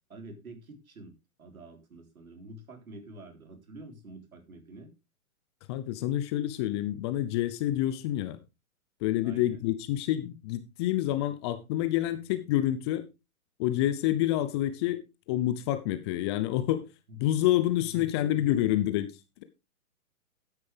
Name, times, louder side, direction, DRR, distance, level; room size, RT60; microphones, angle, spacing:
voice 1, 0.1-4.9 9.2-9.6 17.1-17.2 17.6-18.8, right 1 dB, 70° right, 4.0 m, -47 dB
voice 2, 5.7-8.4 9.0-13.0 13.6-15.0 15.3-16.8 17.2-19.1, left 13 dB, 20° left, 0.6 m, -28 dB
13.0 x 9.7 x 3.4 m
figure-of-eight pair, 120°, 44 cm